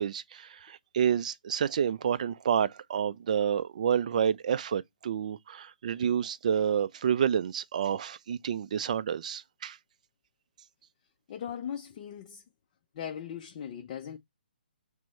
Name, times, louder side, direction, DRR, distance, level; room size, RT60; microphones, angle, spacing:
voice 1, 0.0-9.8, right 8 dB, 50° right, 0.3 m, -29 dB
voice 2, 11.3-12.4 12.9-14.2, left 8 dB, 35° left, 0.4 m, -38 dB
6.0 x 2.0 x 4.2 m
figure-of-eight pair, 135°, 5 cm